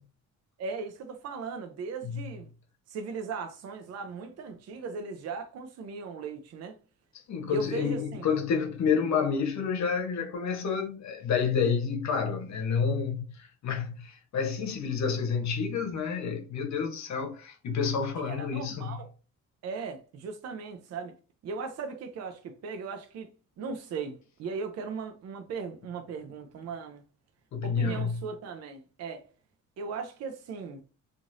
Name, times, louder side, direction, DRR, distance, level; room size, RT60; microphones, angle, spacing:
voice 1, 0.6-2.5 2.9-6.8 7.5-8.3 18.2-19.1 19.6-21.2 21.4-23.3 23.6-27.0 27.6-29.3 29.8-30.8, right 5 dB, 60° right, 0.5 m, -38 dB
voice 2, 7.3-19.0 27.5-28.1, left 6 dB, 65° left, 0.9 m, -29 dB
3.1 x 2.5 x 2.5 m
cardioid pair, 90°, 30 cm